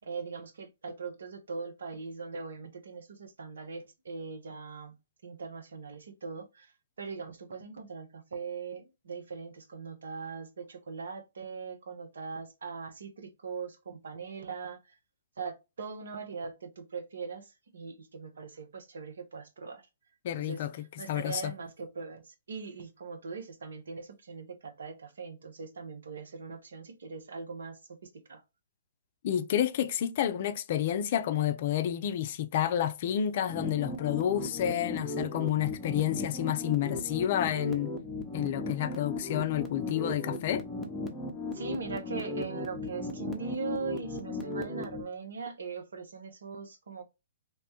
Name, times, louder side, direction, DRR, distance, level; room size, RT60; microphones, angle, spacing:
voice 1, 0.0-5.0 5.2-6.7 7.0-14.8 15.4-19.8 20.3-20.6 21.0-22.2 22.5-28.0 28.3-28.4 41.5-47.0, right 4 dB, 75° right, 0.7 m, -40 dB
voice 2, 20.2-20.7 21.1-21.5 29.2-37.9 38.3-40.6, left 11 dB, 50° left, 0.4 m, -30 dB
sound 1, 33.5-45.0, left 2 dB, 10° left, 0.7 m, -36 dB
3.0 x 2.1 x 2.8 m
figure-of-eight pair, 125°, 0 cm